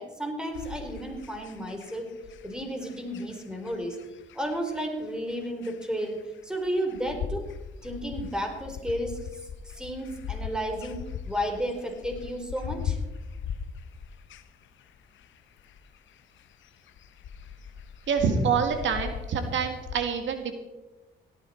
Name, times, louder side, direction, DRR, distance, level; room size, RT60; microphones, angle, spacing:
voice 1, 0.0-2.1 2.4-4.0 4.3-7.4 7.8-9.3 9.7-13.0, equal, 5° right, 3 dB, 4.0 m, -32 dB
sound 1, 0.5-19.9, left 7 dB, 70° left, 1.0 m, -40 dB
voice 2, 18.1-20.5, right 6 dB, 70° right, 6 dB, 1.8 m, -26 dB
17.0 x 13.5 x 4.4 m, 1.1 s
cardioid pair, 90°, 20 cm